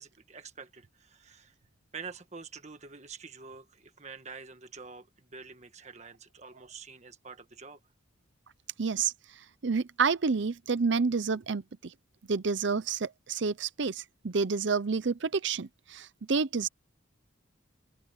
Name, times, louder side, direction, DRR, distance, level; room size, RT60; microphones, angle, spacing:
voice 1, 0.0-1.5 1.9-7.8, right 5 dB, 35° right, 1.6 m, -47 dB
voice 2, 8.8-9.1 9.6-11.9 12.3-16.7, right 5 dB, 60° right, 0.6 m, -29 dB
head